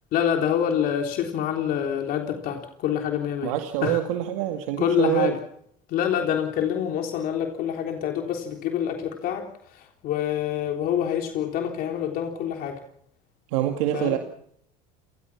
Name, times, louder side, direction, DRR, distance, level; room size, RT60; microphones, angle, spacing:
voice 1, 0.1-3.5 3.8-4.0 4.8-5.4 5.9-12.8 13.9-14.2, left 9 dB, 60° left, 3 dB, 3.7 m, -26 dB
voice 2, 3.4-5.3 13.5-14.2, right 12 dB, 85° right, 5 dB, 2.2 m, -25 dB
28.5 x 19.5 x 6.1 m, 0.67 s
supercardioid pair, 105°, 17 cm